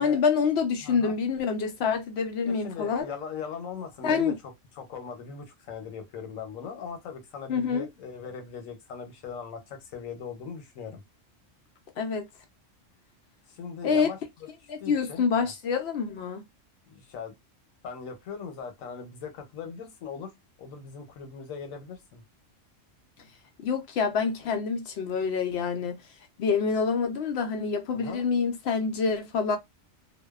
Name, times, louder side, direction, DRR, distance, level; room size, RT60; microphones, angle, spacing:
voice 1, 0.0-3.1 4.0-4.3 7.5-7.9 12.0-12.3 13.8-14.1 14.7-16.4 23.6-26.0 26.4-29.6, left 5 dB, 65° left, 0.7 m, -26 dB
voice 2, 0.8-1.1 2.4-4.3 4.8-11.0 13.5-14.2 14.8-15.5 16.9-17.3 17.8-20.3 20.6-22.2 27.9-28.3, left 6 dB, 90° left, 1.1 m, -39 dB
2.6 x 2.1 x 2.3 m
omnidirectional pair, 1.3 m